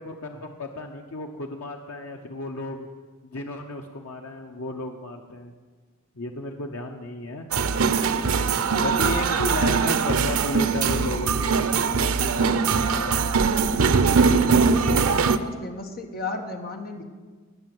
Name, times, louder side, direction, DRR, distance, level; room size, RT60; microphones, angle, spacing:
voice 1, 0.0-2.9 3.2-5.5 6.1-7.5 8.8-13.5, left 2 dB, 85° left, 3 dB, 1.0 m, -34 dB
sound 1, 7.5-15.4, right 5 dB, 90° right, 0.7 m, -21 dB
voice 2, 14.5-17.0, left 3 dB, 45° left, 4 dB, 1.5 m, -34 dB
20.0 x 6.8 x 7.9 m, 1.4 s
head